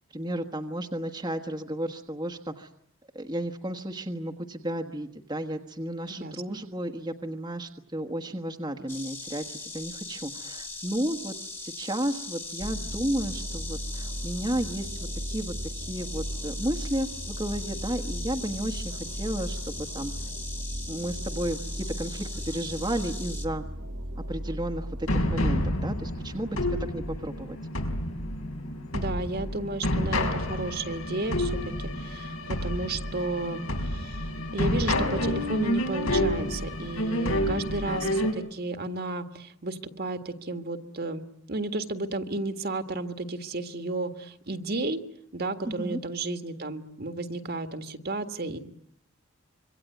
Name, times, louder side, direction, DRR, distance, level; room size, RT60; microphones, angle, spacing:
voice 1, 0.1-2.7 3.1-20.1 20.9-23.6 24.3-26.6 26.9-27.6 45.6-46.0, right 1 dB, 20° right, 4 dB, 1.3 m, -33 dB
voice 2, 6.1-6.6 28.9-34.3 34.5-41.2 41.5-45.0 45.3-48.6, right 2 dB, 50° right, 8 dB, 1.8 m, -33 dB
Insect, 8.9-23.5, left 3 dB, 10° left, 1.6 m, -40 dB
sound 1, 12.6-25.7, equal, 85° right, 2.7 m, -36 dB
sound 2, 25.1-38.3, left 1 dB, 85° left, 5.1 m, -29 dB
26.5 x 24.0 x 9.4 m, 0.68 s
head